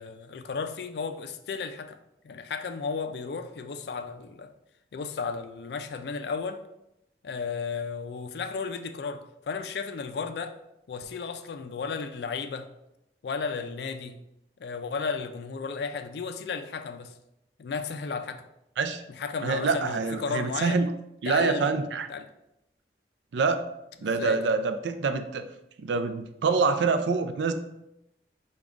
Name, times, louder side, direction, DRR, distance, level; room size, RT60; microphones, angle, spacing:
voice 1, 0.0-2.0 2.2-4.5 4.9-6.6 7.2-10.5 10.9-12.7 13.2-14.1 14.6-17.1 17.6-18.5 19.1-20.8 21.3-21.7 22.1-22.3 24.0-24.5, left 5 dB, 70° left, 0.3 m, -34 dB
voice 2, 19.4-20.9 21.2-22.1 23.3-23.7 24.0-25.4 25.8-27.5, right 4 dB, 85° right, 0.4 m, -26 dB
5.0 x 2.3 x 3.6 m
head